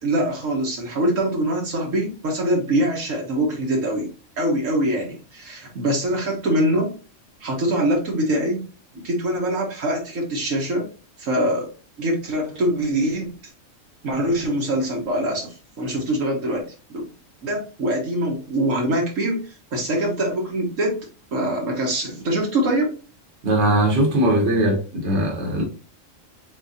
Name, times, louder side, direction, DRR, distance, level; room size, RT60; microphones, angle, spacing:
voice 1, 0.0-4.1 4.4-6.9 7.4-8.7 9.0-10.9 11.2-11.7 12.0-13.3 14.0-16.6 16.9-17.0 17.4-19.4 19.7-21.0 21.3-23.0, right 1 dB, 80° right, 1.5 m, -23 dB
voice 2, 23.4-25.6, right 1 dB, 60° right, 1.5 m, -20 dB
4.0 x 3.8 x 2.7 m
omnidirectional pair, 1.3 m